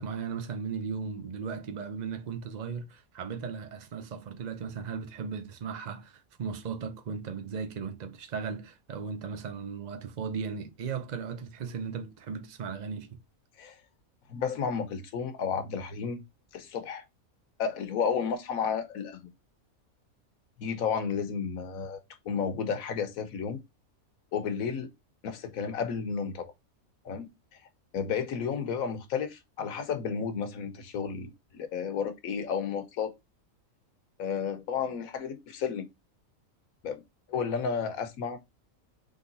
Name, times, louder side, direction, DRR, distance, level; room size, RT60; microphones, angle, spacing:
voice 1, 0.0-13.2, right 6 dB, 45° right, 0.6 m, -37 dB
voice 2, 14.3-16.2 16.5-17.0 17.6-19.3 20.6-23.6 24.3-24.9 25.2-26.5 27.0-27.6 27.9-33.1 34.2-35.9 36.8-37.0 37.3-38.4, left 6 dB, 75° left, 1.3 m, -32 dB
3.8 x 3.3 x 3.9 m
omnidirectional pair, 1.5 m